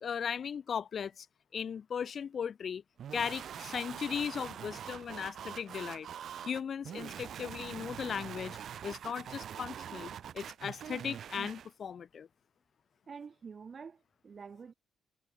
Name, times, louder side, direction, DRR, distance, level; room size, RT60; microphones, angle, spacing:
voice 1, 0.0-1.3 1.5-2.8 3.1-6.1 6.4-8.6 8.8-12.3, left 7 dB, 50° left, 0.8 m, -37 dB
sound 1, 3.0-11.7, right 9 dB, 60° right, 2.6 m, -44 dB
voice 2, 13.1-14.7, right 6 dB, 40° right, 7.4 m, -47 dB
cardioid pair, 90°, 0 cm